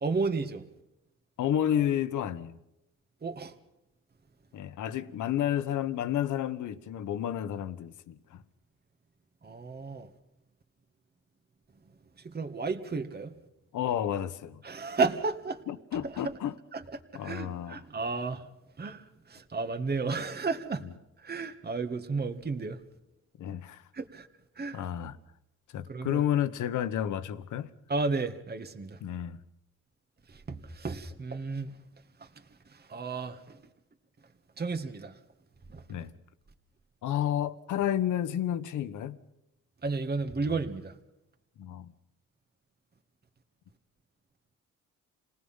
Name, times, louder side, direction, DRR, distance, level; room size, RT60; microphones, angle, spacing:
voice 1, 0.0-0.6 3.2-3.5 9.4-10.1 12.2-13.3 14.6-15.6 16.0-16.3 16.7-16.8 17.1-18.4 18.8-20.9 21.2-22.8 23.9-24.3 24.6-24.8 25.9-26.2 27.9-29.0 30.3-31.8 32.2-32.3 32.7-33.6 34.6-35.2 35.7-35.8 39.8-41.0, right 4 dB, 30° right, 2.0 m, -33 dB
voice 2, 1.4-2.6 4.5-8.4 13.7-14.6 15.7-16.6 17.1-17.8 23.4-23.8 24.7-25.2 25.7-27.7 29.0-29.4 35.9-36.1 37.0-39.2 41.6-41.9, left 10 dB, 80° left, 1.4 m, -31 dB
29.0 x 19.0 x 5.8 m
cardioid pair, 90°, 30 cm